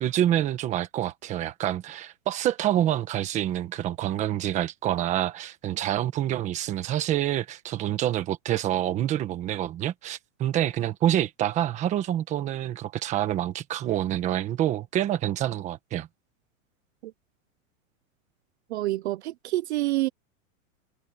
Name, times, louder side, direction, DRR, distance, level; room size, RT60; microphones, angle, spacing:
voice 1, 0.0-16.1, right 12 dB, 15° right, 1.3 m, -27 dB
voice 2, 18.7-20.1, right 17 dB, 55° right, 0.7 m, -27 dB
supercardioid pair, 175°, 40 cm